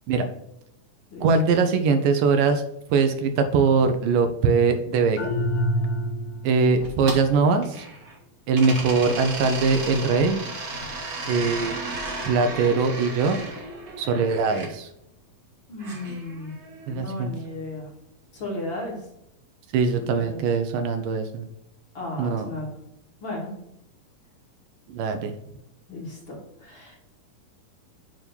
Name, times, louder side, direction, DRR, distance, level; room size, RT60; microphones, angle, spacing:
voice 1, 1.2-2.6 2.9-5.2 6.4-7.9 8.5-10.4 11.3-11.7 12.3-13.4 14.0-14.9 16.9-17.3 19.7-21.4 22.2-22.5 24.9-25.3, right 4 dB, 80° right, 6 dB, 2.3 m, -22 dB
sound 1, 5.2-6.6, equal, 80° left, 1.2 m, -26 dB
sound 2, 6.7-8.2 8.5-14.7 15.8-16.9, right 2 dB, 40° right, 1.4 m, -34 dB
voice 2, 15.7-16.5 16.9-17.9 18.3-19.0 20.0-20.4 21.9-22.7 23.2-23.5 25.9-26.3 26.6-27.0, left 2 dB, 40° left, -3 dB, 2.6 m, -34 dB
9.1 x 3.7 x 6.9 m, 0.82 s
omnidirectional pair, 4.0 m